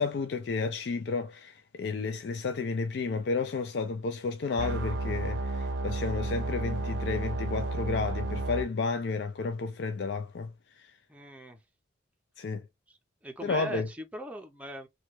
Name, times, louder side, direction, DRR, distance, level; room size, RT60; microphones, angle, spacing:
voice 1, 0.0-10.9 12.4-12.6 13.4-13.9, left 4 dB, 60° left, 0.4 m, -32 dB
sound 1, 4.6-8.6, right 2 dB, 80° right, 0.6 m, -32 dB
voice 2, 11.1-11.6 12.9-13.0 13.2-14.9, right 1 dB, 5° right, 0.5 m, -40 dB
3.0 x 2.2 x 3.0 m
head